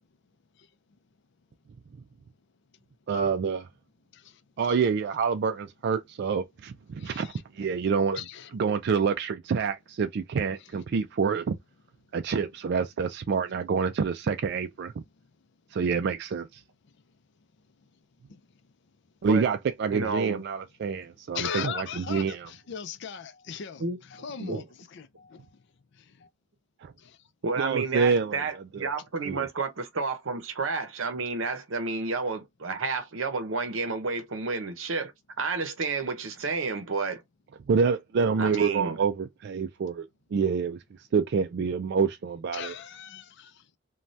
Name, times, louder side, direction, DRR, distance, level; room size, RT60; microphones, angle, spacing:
voice 1, 3.1-3.7 4.6-8.2 8.5-11.5 12.1-14.9 15.7-16.6 19.2-22.5 26.8-26.9 27.6-28.4 28.7-28.9 29.3-29.5 37.7-40.1 40.3-40.8 41.1-42.7, right 5 dB, 55° right, 0.3 m, -27 dB
voice 2, 7.0-7.4 8.2-8.5 18.3-18.4 21.3-23.8 24.1-24.6 24.9-25.5 26.1-26.3 27.0-27.2 42.5-43.8, left 7 dB, 60° left, 0.5 m, -38 dB
voice 3, 19.9-20.4 23.8-24.0 24.4-24.7 27.4-35.1 35.4-37.2 38.4-39.0, right 4 dB, 70° right, 0.7 m, -30 dB
2.7 x 2.3 x 3.1 m
head